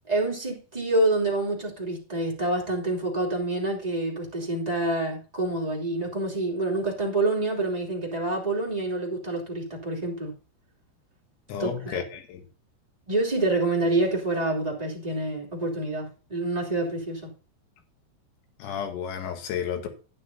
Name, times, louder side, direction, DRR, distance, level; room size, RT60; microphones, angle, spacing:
voice 1, 0.1-10.3 11.6-12.0 13.1-17.3, right 2 dB, 10° right, 2.0 m, -27 dB
voice 2, 11.5-12.4 18.6-19.9, left 8 dB, 85° left, 4.0 m, -32 dB
12.0 x 10.0 x 2.8 m
omnidirectional pair, 5.1 m